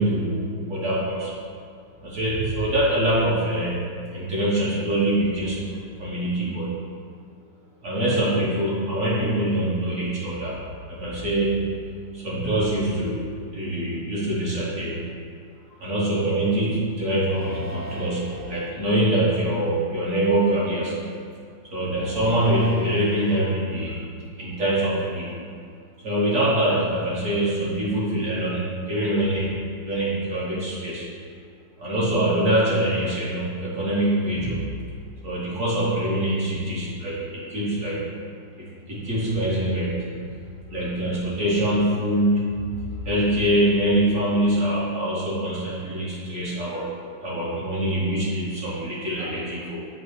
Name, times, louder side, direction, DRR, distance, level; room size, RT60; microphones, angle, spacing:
voice 1, 0.0-1.3 2.0-3.8 4.1-5.6 6.0-6.7 7.8-10.5 10.9-15.1 15.8-21.0 21.7-24.0 24.4-25.3 26.0-29.5 29.8-31.1 31.8-34.6 35.2-38.0 38.6-40.1 40.7-42.6 43.0-46.9 47.2-49.9, right 1 dB, 45° right, -8 dB, 1.5 m, -24 dB
sound 1, 17.2-18.7 19.4-19.9 21.9-23.4, right 1 dB, 70° right, 1.5 m, -40 dB
7.2 x 2.8 x 4.8 m, 2.2 s
omnidirectional pair, 2.0 m